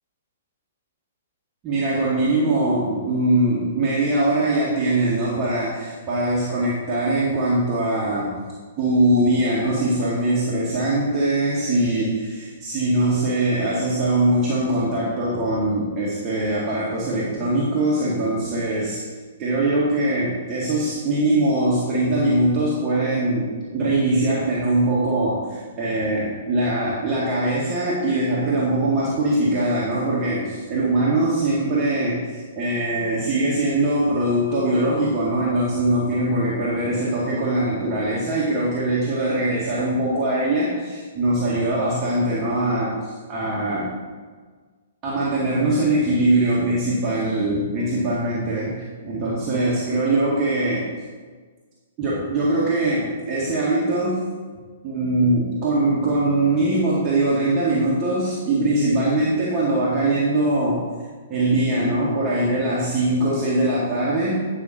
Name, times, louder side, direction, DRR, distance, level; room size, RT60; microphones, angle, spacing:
voice 1, 1.6-8.4 8.8-19.0 19.4-44.0 45.0-50.9 52.0-54.2 54.8-60.9 61.3-64.4, right 1 dB, 30° right, -7 dB, 1.9 m, -22 dB
9.4 x 5.7 x 4.3 m, 1.5 s
figure-of-eight pair, 115°, 0 cm